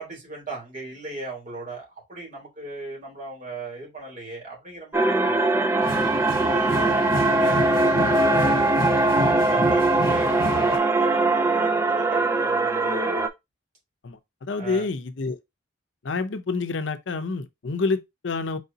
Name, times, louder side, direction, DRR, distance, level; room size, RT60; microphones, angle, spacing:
voice 1, 0.0-5.6 6.4-8.7 9.2-13.2 14.6-14.9, right 2 dB, 45° right, 2.9 m, -37 dB
sound 1, 4.9-13.3, right 2 dB, 15° right, 0.4 m, -21 dB
sound 2, 5.8-10.8, left 2 dB, 50° left, 0.9 m, -30 dB
voice 2, 14.0-15.4 16.0-18.6, left 4 dB, 75° left, 0.6 m, -28 dB
4.8 x 3.9 x 2.7 m
head